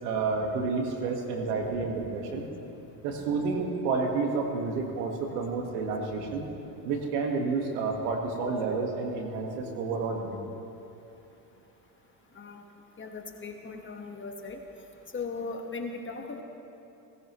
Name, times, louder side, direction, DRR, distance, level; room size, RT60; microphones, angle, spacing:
voice 1, 0.0-2.5 3.0-6.5 6.8-10.4, right 4 dB, 85° right, 2 dB, 1.8 m, -30 dB
voice 2, 13.0-14.6 15.1-16.4, left 4 dB, 25° left, 2 dB, 1.5 m, -38 dB
17.0 x 14.5 x 3.2 m, 2.9 s
supercardioid pair, 85°, 45 cm